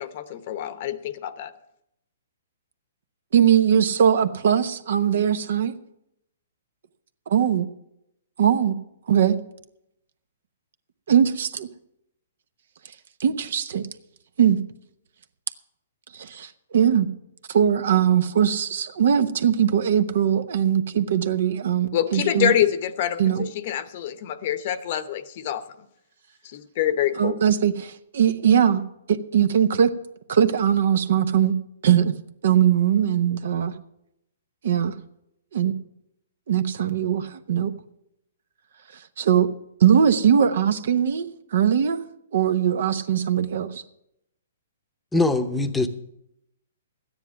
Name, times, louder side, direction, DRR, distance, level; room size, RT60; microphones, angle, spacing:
voice 1, 0.0-1.5 21.9-25.6 26.5-27.4, left 11 dB, 50° left, 13 dB, 0.8 m, -26 dB
voice 2, 3.3-5.7 7.3-7.7 8.4-8.8 9.1-9.4 11.1-11.7 13.2-13.9 14.4-14.6 16.1-17.1 17.5-22.5 23.2-23.4 27.2-28.8 29.1-29.9 30.3-31.5 31.8-32.1 32.4-33.7 34.6-34.9 35.5-35.7 36.5-37.7 39.2-39.5 39.8-41.3 41.5-42.0 42.3-43.8, right 9 dB, 65° right, 11 dB, 0.9 m, -20 dB
voice 3, 45.1-45.9, left 2 dB, 5° left, 8 dB, 0.8 m, -22 dB
13.0 x 9.8 x 5.8 m, 0.80 s
hypercardioid pair, 140°, 0 cm